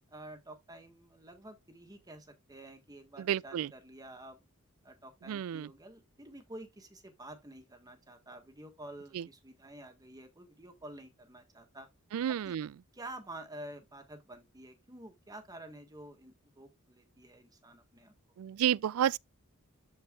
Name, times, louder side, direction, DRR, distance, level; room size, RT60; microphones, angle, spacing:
voice 1, 0.1-4.4 4.8-11.9 12.3-12.6 12.9-18.1, right 1 dB, 15° right, 1.6 m, -49 dB
voice 2, 3.2-3.7 5.3-5.7 9.1-9.3 12.1-12.7 18.4-19.2, right 10 dB, 70° right, 0.3 m, -31 dB
13.5 x 4.5 x 2.3 m
head